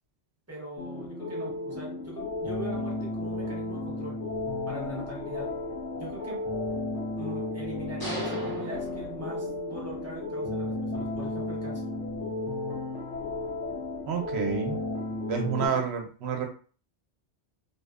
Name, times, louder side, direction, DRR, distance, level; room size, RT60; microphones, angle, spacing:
voice 1, 0.5-4.2 4.7-5.5 6.0-6.4 7.2-11.8 15.6-15.8, right 1 dB, 15° right, -4 dB, 0.7 m, -41 dB
sound 1, 0.8-15.7, left 1 dB, 75° left, 0.9 m, -34 dB
sound 2, 2.2-15.0, left 6 dB, 55° left, 0.5 m, -42 dB
sound 3, 8.0-9.8, equal, 20° left, 0.8 m, -37 dB
voice 2, 14.1-14.8 15.3-16.5, right 6 dB, 70° right, 3 dB, 0.8 m, -29 dB
2.7 x 2.0 x 2.3 m, 0.39 s
omnidirectional pair, 1.2 m